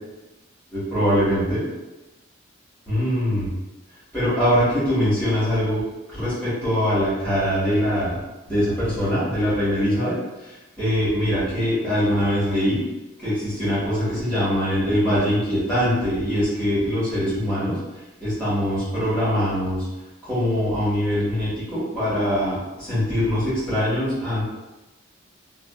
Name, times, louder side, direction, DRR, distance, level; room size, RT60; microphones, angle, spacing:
voice 1, 0.7-1.6 2.9-3.5 4.1-5.8 6.1-8.2 8.5-10.1 10.4-12.8 13.2-17.8 18.2-19.9 20.2-24.4, equal, 5° left, -12 dB, 1.3 m, -22 dB
2.4 x 2.4 x 2.3 m, 1.1 s
head